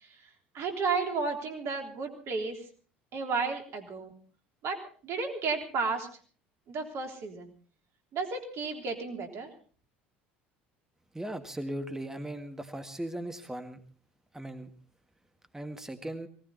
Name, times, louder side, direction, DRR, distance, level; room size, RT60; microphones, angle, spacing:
voice 1, 0.5-2.6 3.1-4.1 4.6-6.1 6.7-7.5 8.1-9.5, right 4 dB, 50° right, 4 dB, 3.3 m, -33 dB
voice 2, 11.1-13.8 14.3-14.7 15.5-16.3, right 1 dB, 10° right, 7 dB, 1.7 m, -38 dB
18.0 x 18.0 x 4.0 m, 0.41 s
figure-of-eight pair, 65°, 6 cm